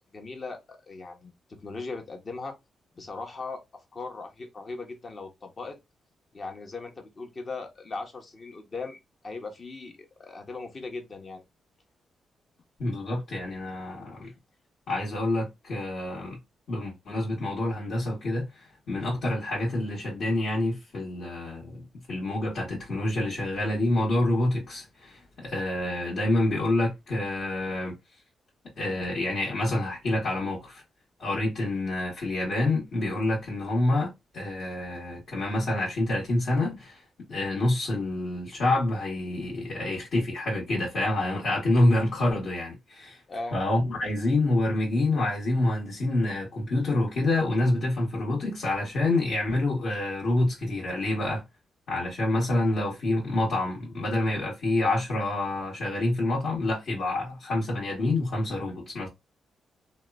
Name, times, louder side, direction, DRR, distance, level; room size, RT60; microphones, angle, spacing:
voice 1, 0.1-1.3 1.6-2.6 3.0-5.8 6.3-9.0 9.2-11.4 14.2-14.3 43.3-43.6, left 3 dB, 45° left, 0.8 m, -38 dB
voice 2, 12.8-14.3 14.9-16.4 16.7-27.9 28.8-30.8 31.2-37.0 37.3-43.2 43.5-51.4 51.9-59.1, left 2 dB, 65° left, 1.1 m, -27 dB
2.9 x 2.1 x 2.3 m
cardioid pair, 80°, 0 cm